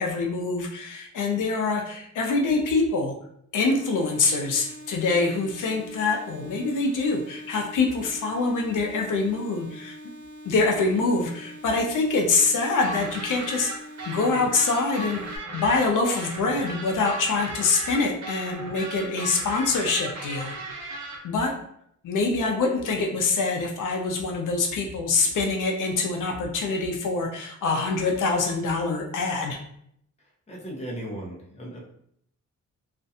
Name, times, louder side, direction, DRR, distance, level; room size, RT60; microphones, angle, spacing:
voice 1, 0.0-3.1 3.5-10.0 10.4-13.7 14.1-15.2 15.5-20.5 20.8-20.9 21.2-21.5 22.0-29.6, left 3 dB, 75° left, 1 dB, 0.5 m, -25 dB
sound 1, 3.6-15.4, equal, 35° right, 0.5 m, -44 dB
sound 2, 12.8-21.2, right 2 dB, 65° right, 0.8 m, -36 dB
voice 2, 30.5-31.8, right 1 dB, 20° left, -2 dB, 0.6 m, -36 dB
2.4 x 2.1 x 2.7 m, 0.70 s
wide cardioid pair, 140°, 31 cm